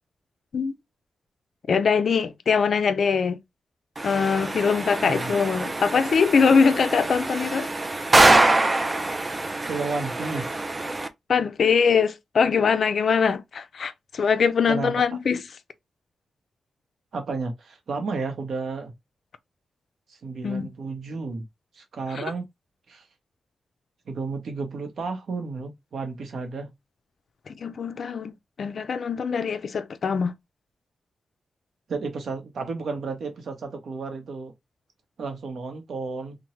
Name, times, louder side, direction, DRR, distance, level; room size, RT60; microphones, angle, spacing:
voice 1, 1.7-3.4 4.0-7.7 11.3-15.4 20.4-20.7 22.1-22.2 27.5-28.3 28.6-30.3, left 5 dB, 60° left, 0.4 m, -22 dB
sound 1, 4.0-11.1, right 2 dB, 25° right, 0.3 m, -24 dB
voice 2, 9.6-10.6 14.7-14.9 17.1-18.9 20.1-21.4 21.7-22.4 22.9-23.0 24.1-26.7 31.9-34.5 35.2-36.4, right 4 dB, 70° right, 0.8 m, -32 dB
2.9 x 2.1 x 2.9 m
wide cardioid pair, 115°, 0 cm